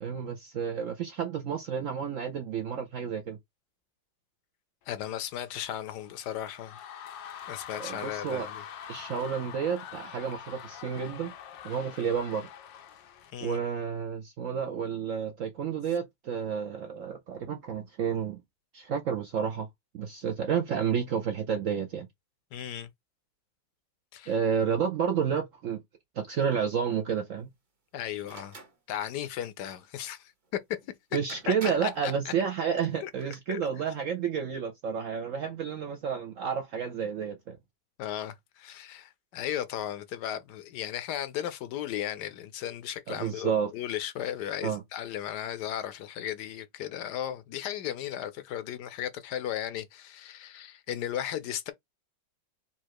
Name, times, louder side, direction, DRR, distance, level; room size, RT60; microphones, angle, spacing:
voice 1, 0.0-3.4 7.7-8.5 8.9-11.3 11.6-12.5 13.4-18.4 18.7-19.7 19.9-22.1 24.3-25.8 26.2-27.5 31.1-37.6 43.1-43.7 44.6-44.8, right 7 dB, 65° right, 0.8 m, -30 dB
voice 2, 4.9-6.8 7.5-8.6 8.9-9.1 13.3-13.6 22.5-22.9 24.1-24.3 27.9-28.5 28.9-30.3 31.5-31.6 31.8-32.3 33.0-33.1 33.5-33.6 38.0-51.7, left 11 dB, 75° left, 1.1 m, -36 dB
sound 1, 5.0-13.3, left 9 dB, 90° left, 1.4 m, -45 dB
sound 2, 28.2-28.7 30.8-30.9 31.3-32.0 33.0-33.4, right 3 dB, 30° right, 1.1 m, -45 dB
4.3 x 2.4 x 4.6 m
omnidirectional pair, 1.9 m